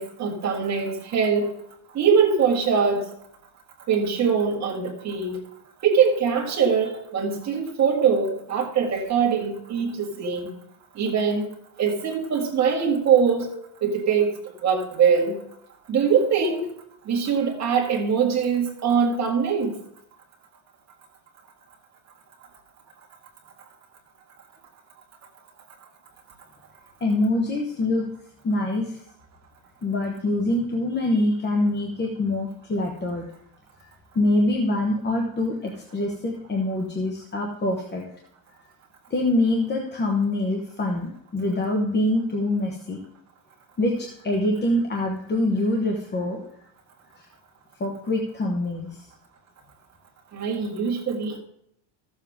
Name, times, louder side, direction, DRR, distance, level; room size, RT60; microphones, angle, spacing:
voice 1, 0.0-1.5 1.9-3.0 3.9-5.4 5.8-10.5 11.0-11.5 11.8-13.5 13.8-14.3 14.6-15.4 15.9-16.7 17.1-19.7 50.3-51.4, right 6 dB, 35° right, 0 dB, 2.0 m, -22 dB
voice 2, 27.0-28.0 28.4-29.0 29.8-33.3 34.1-38.0 39.1-43.0 43.8-46.4 47.2-47.3 47.8-49.0, left 1 dB, 20° left, 0 dB, 1.0 m, -24 dB
14.0 x 7.2 x 3.6 m, 0.72 s
cardioid pair, 170°, 49 cm